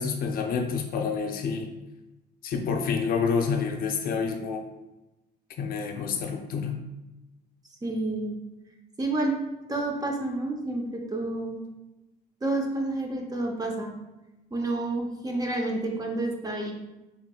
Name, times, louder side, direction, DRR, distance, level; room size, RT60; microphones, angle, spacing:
voice 1, 0.0-1.7 2.4-4.6 5.6-6.8, left 5 dB, 60° left, 4 dB, 0.6 m, -28 dB
voice 2, 7.8-8.4 9.0-9.4 9.7-11.6 12.4-13.9 14.5-16.7, right 2 dB, 20° right, 1 dB, 0.7 m, -29 dB
4.5 x 3.5 x 2.3 m, 1.0 s
cardioid pair, 110°, 17 cm